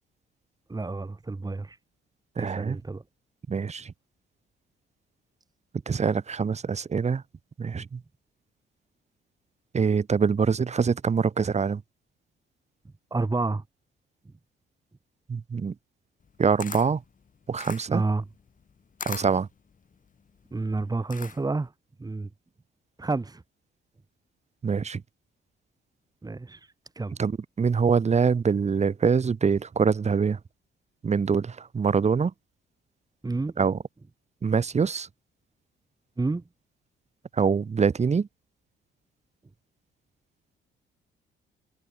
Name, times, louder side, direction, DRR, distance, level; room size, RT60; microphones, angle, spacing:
voice 1, 0.7-1.8 2.4-3.0 13.1-13.6 17.9-18.2 20.5-21.7 22.0-22.3 23.0-23.4 26.2-26.6 27.0-27.2 33.2-33.6 36.2-36.4, right 3 dB, 20° right, 2.8 m, -29 dB
voice 2, 2.4-2.8 3.5-3.9 5.9-7.2 7.6-8.0 9.7-11.8 15.3-15.7 16.4-17.0 17.5-18.0 19.0-19.5 24.6-25.0 27.2-30.4 31.0-32.3 33.6-33.8 34.4-35.1 37.3-38.3, right 5 dB, 35° right, 1.7 m, -24 dB
Camera, 16.2-21.7, left 6 dB, 40° left, 5.0 m, -42 dB
cardioid pair, 90°, 20 cm